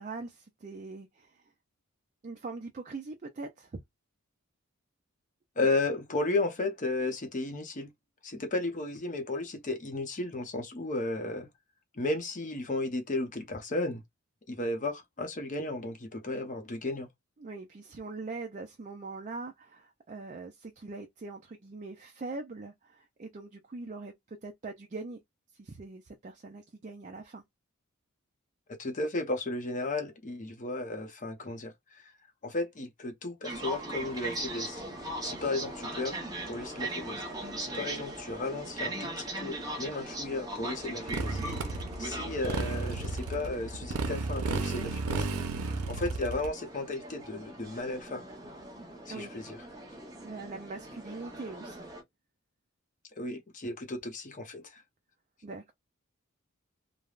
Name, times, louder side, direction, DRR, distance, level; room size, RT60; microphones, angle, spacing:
voice 1, 0.0-1.4 2.2-3.8 17.4-25.2 25.6-27.4 49.1-49.3 50.2-51.9 55.4-55.7, right 3 dB, 35° right, 0.4 m, -42 dB
voice 2, 5.6-7.9 8.2-11.5 11.9-14.0 14.5-17.1 28.8-32.1 32.4-34.8 35.2-36.2 36.5-37.2 37.6-41.4 42.0-45.3 45.9-48.2 49.1-49.6 53.2-54.8, left 2 dB, 35° left, 0.7 m, -34 dB
sound 1, 33.4-52.0, right 1 dB, 15° right, 0.8 m, -40 dB
Motorcycle, 41.1-46.5, right 3 dB, 90° right, 0.6 m, -33 dB
3.2 x 2.1 x 2.4 m
head